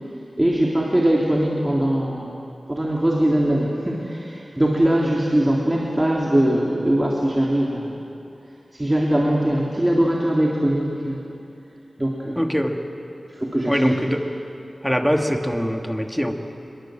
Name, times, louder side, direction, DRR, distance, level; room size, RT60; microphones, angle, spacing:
voice 1, 0.4-2.3 2.7-8.0 8.7-11.2 12.0-12.4 13.3-13.8, right 1 dB, 20° right, -3 dB, 3.2 m, -21 dB
voice 2, 12.4-12.8 13.7-14.3 14.8-16.3, equal, 5° left, 3 dB, 2.4 m, -22 dB
26.0 x 22.5 x 7.7 m, 2.7 s
cardioid pair, 45°, 0 cm